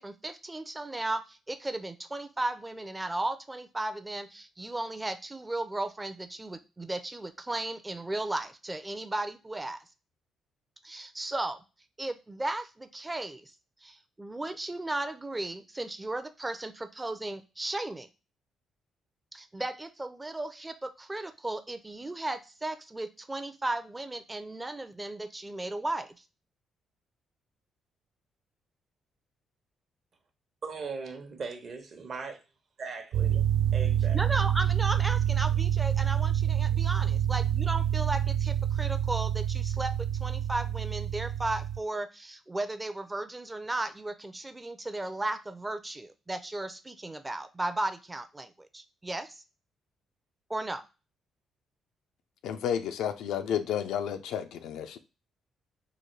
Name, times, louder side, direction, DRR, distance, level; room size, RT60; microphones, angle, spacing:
voice 1, 0.0-9.8 10.8-11.6 12.0-13.5 13.8-18.1 19.3-26.1 34.1-49.4 50.5-50.8, right 2 dB, 15° right, 0.5 m, -35 dB
voice 2, 30.6-32.4 32.8-34.2, right 4 dB, 55° right, 0.9 m, -39 dB
sound 1, 33.1-41.8, right 10 dB, 75° right, 0.3 m, -27 dB
voice 3, 52.4-55.0, left 9 dB, 85° left, 0.4 m, -31 dB
3.8 x 2.2 x 3.1 m
cardioid pair, 90°, 0 cm